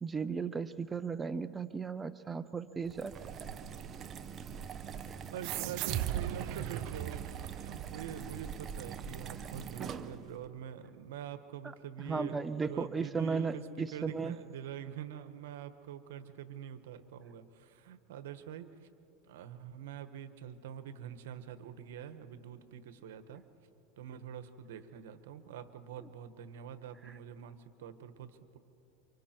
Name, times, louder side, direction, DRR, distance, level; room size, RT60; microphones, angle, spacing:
voice 1, 0.0-3.1 12.1-14.4, right 5 dB, 15° right, 11 dB, 0.6 m, -35 dB
sound 1, 2.8-10.4, right 7 dB, 30° right, 1.0 m, -44 dB
voice 2, 5.3-18.9 19.2-23.4 24.0-28.6, right 9 dB, 85° right, 10 dB, 1.4 m, -45 dB
sound 2, 5.4-8.5, right 12 dB, 60° right, 0.7 m, -37 dB
28.5 x 25.0 x 4.6 m, 2.6 s
supercardioid pair, 120°, 0 cm